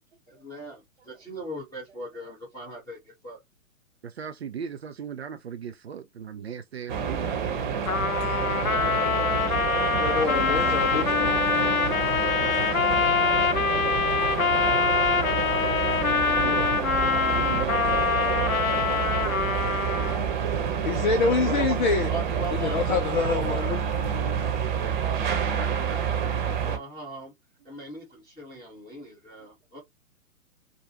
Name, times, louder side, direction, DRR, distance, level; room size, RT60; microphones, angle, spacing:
voice 1, 0.3-3.4 12.2-12.5 14.9-15.2 16.0-17.0 21.5-21.8 22.1-23.7 25.5-27.3 27.6-29.8, right 1 dB, 10° left, 1.3 m, -40 dB
voice 2, 4.0-7.6 16.3-16.8 17.3-18.0, right 7 dB, 50° right, 0.5 m, -37 dB
sound 1, 6.9-26.8, right 7 dB, 35° right, 1.1 m, -28 dB
Trumpet, 7.9-20.3, left 6 dB, 75° left, 0.7 m, -25 dB
voice 3, 9.8-11.3 20.8-22.1 22.5-23.8, left 5 dB, 35° left, 0.6 m, -26 dB
4.9 x 2.4 x 2.9 m
figure-of-eight pair, 120°, 42 cm